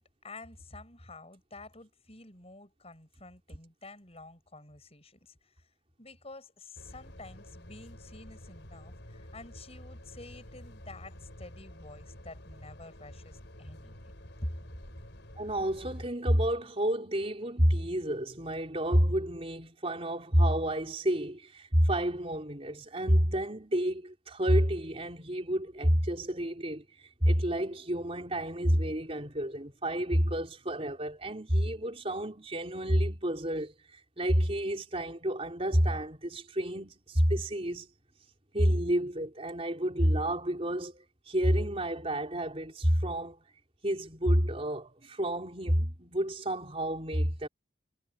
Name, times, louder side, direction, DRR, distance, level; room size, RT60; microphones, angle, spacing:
voice 1, 0.0-5.7 6.0-14.1 14.4-14.5, left 2 dB, 35° left, 7.9 m, -48 dB
sound 1, 6.8-16.1, left 1 dB, 70° left, 5.5 m, -49 dB
voice 2, 15.4-37.9 38.5-43.4 43.8-47.5, equal, 30° right, 4.2 m, -29 dB
head